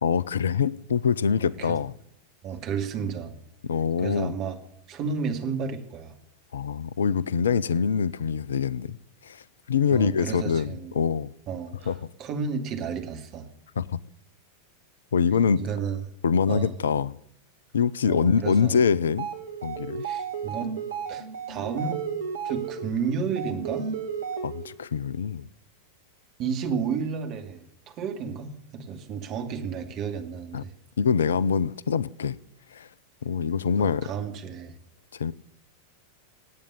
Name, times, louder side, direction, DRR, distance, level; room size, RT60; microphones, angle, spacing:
voice 1, 0.0-1.9 3.6-4.3 6.5-8.9 9.2-9.4 9.7-11.3 11.9-12.0 13.8-14.0 15.1-15.6 16.2-17.1 17.7-19.3 19.6-20.0 24.4-25.4 30.5-30.6 31.0-32.4 32.7-32.9 33.2-34.1 35.1-35.3, left 6 dB, 65° left, 0.5 m, -24 dB
voice 2, 1.4-1.7 2.4-3.4 4.0-4.6 4.9-6.1 9.9-10.9 11.5-11.9 12.2-13.5 15.6-16.0 16.4-16.7 18.0-18.8 20.0-20.7 21.1-22.0 22.4-23.9 26.4-30.7 33.8-34.7, right 6 dB, 35° right, 2.6 m, -32 dB
sound 1, 19.0-24.8, right 6 dB, 65° right, 2.0 m, -33 dB
18.5 x 8.8 x 8.5 m
figure-of-eight pair, 90°, 0 cm